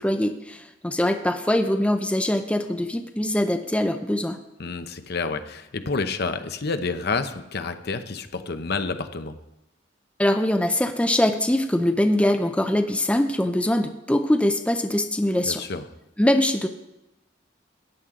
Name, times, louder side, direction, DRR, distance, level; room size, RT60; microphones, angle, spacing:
voice 1, 0.0-4.4 10.2-15.6 16.2-16.7, left 1 dB, 5° left, 6 dB, 0.5 m, -23 dB
voice 2, 4.6-9.4 15.4-15.8, left 4 dB, 55° left, 9 dB, 0.8 m, -29 dB
14.5 x 9.6 x 3.8 m, 0.91 s
head